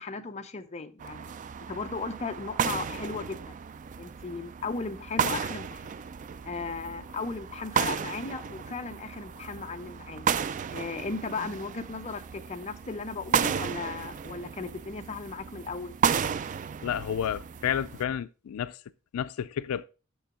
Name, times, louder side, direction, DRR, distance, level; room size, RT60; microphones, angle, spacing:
voice 1, 0.0-3.5 4.0-5.9 6.4-10.3 10.7-15.9, left 4 dB, 30° left, 0.6 m, -36 dB
sound 1, 1.0-18.0, right 7 dB, 35° right, 0.3 m, -33 dB
voice 2, 16.8-18.8 19.1-19.8, left 9 dB, 75° left, 0.4 m, -31 dB
7.1 x 6.1 x 3.7 m
head